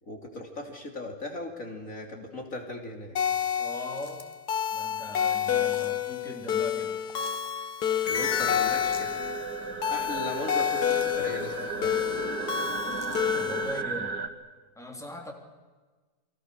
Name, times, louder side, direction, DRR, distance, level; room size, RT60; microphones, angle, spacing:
voice 1, 0.0-3.2 8.1-9.3 9.9-11.9, left 1 dB, 50° left, 2 dB, 3.3 m, -38 dB
sound 1, 3.2-13.8, left 9 dB, 70° left, 1.7 m, -29 dB
voice 2, 3.6-4.3 4.7-7.0 13.3-14.2 14.8-15.3, equal, ahead, 1 dB, 3.3 m, -40 dB
sound 2, 3.7-4.5 5.6-6.0 7.0-7.5 8.8-9.2 10.4-11.3 12.8-13.2, left 2 dB, 15° left, 1.5 m, -50 dB
sound 3, 8.0-14.3, right 4 dB, 85° right, 2.3 m, -35 dB
30.0 x 22.5 x 6.6 m, 1.3 s
omnidirectional pair, 1.8 m